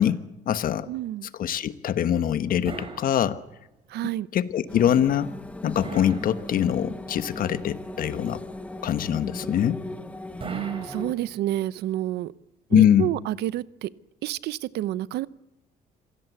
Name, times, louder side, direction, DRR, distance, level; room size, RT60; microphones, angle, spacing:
voice 1, 0.0-0.9 1.4-3.4 4.3-5.3 5.6-8.4 8.8-9.8 12.7-13.1, left 10 dB, 55° left, 12 dB, 1.3 m, -23 dB
voice 2, 0.9-1.3 3.9-4.3 10.4-12.3 12.7-13.9 14.2-15.3, right 14 dB, 75° right, 18 dB, 0.8 m, -29 dB
sound 1, 2.6-3.8 5.8-7.0 10.4-11.7, right 3 dB, 35° right, 4.5 m, -41 dB
sound 2, 4.7-11.1, left 1 dB, 10° left, 1.3 m, -38 dB
26.0 x 17.0 x 8.3 m, 0.85 s
cardioid pair, 110°, 17 cm